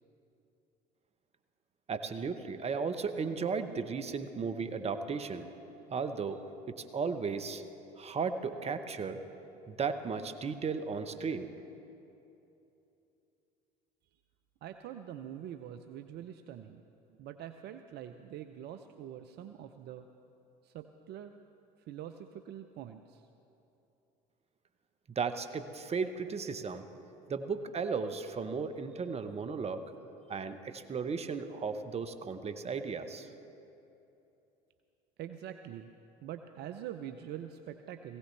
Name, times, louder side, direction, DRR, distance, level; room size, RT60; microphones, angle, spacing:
voice 1, 1.9-5.4 5.9-6.4 6.8-7.6 8.0-9.2 9.7-11.5 25.2-26.8 27.3-29.8 30.3-33.3, right 5 dB, 30° right, 9 dB, 1.0 m, -35 dB
voice 2, 14.6-16.8 17.2-20.1 20.6-21.3 21.8-23.3 35.2-35.9 36.2-38.2, right 10 dB, 50° right, 8 dB, 0.6 m, -44 dB
19.0 x 16.5 x 3.3 m, 2.9 s
hypercardioid pair, 70°, 21 cm